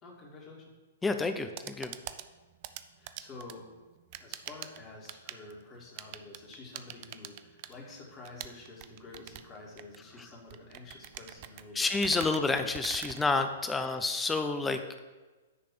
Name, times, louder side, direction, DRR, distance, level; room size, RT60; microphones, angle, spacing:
voice 1, 0.0-0.7 3.0-3.7 4.2-12.6 13.9-14.0, left 3 dB, 25° left, -2 dB, 1.9 m, -49 dB
voice 2, 1.0-2.0 11.7-15.0, left 3 dB, 10° left, 7 dB, 0.6 m, -29 dB
sound 1, 1.3-13.9, right 12 dB, 40° right, 0.4 m, -46 dB
9.7 x 3.4 x 5.9 m, 1.3 s
figure-of-eight pair, 110°, 0 cm